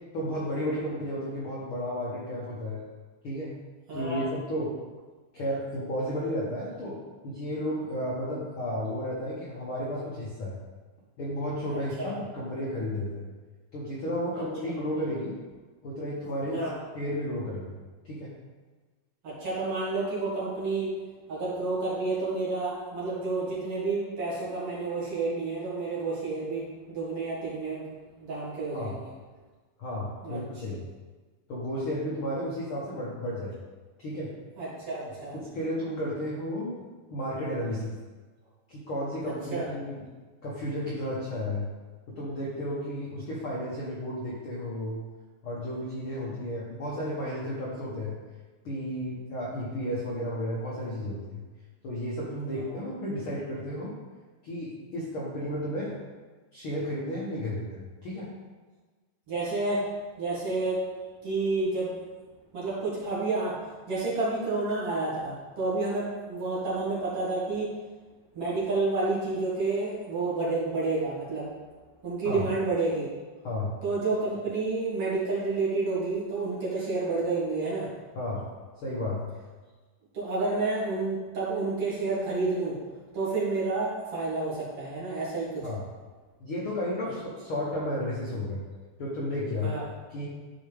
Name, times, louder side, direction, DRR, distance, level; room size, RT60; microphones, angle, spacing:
voice 1, 0.1-2.8 3.2-3.5 3.9-4.7 5.3-10.6 11.2-13.3 13.7-15.4 15.8-16.6 16.9-17.8 18.0-18.3 28.7-29.0 29.8-30.8 31.5-33.6 34.0-34.3 35.1-36.8 37.1-38.0 38.7-40.0 40.4-41.7 42.1-45.0 45.4-48.2 48.6-51.4 51.8-53.9 54.4-56.0 56.5-58.3 72.2-72.4 73.4-73.7 78.1-78.4 78.8-79.3 85.6-85.8 86.4-88.6 89.0-89.7 90.1-90.3, left 1 dB, 60° left, -5 dB, 1.3 m, -33 dB
voice 2, 3.9-4.3 12.0-12.1 14.3-14.4 16.5-16.7 19.2-21.0 21.3-27.8 28.2-29.1 30.2-30.4 30.7-30.8 34.6-35.4 39.2-39.7 52.6-52.8 59.3-59.9 60.2-60.8 61.2-61.9 62.5-63.6 63.9-67.7 68.3-71.5 72.0-73.1 73.8-77.9 80.1-82.8 83.1-85.7 89.6-89.8, right 3 dB, 45° right, -8 dB, 2.7 m, -30 dB
12.5 x 4.6 x 3.5 m, 1.3 s
omnidirectional pair, 4.1 m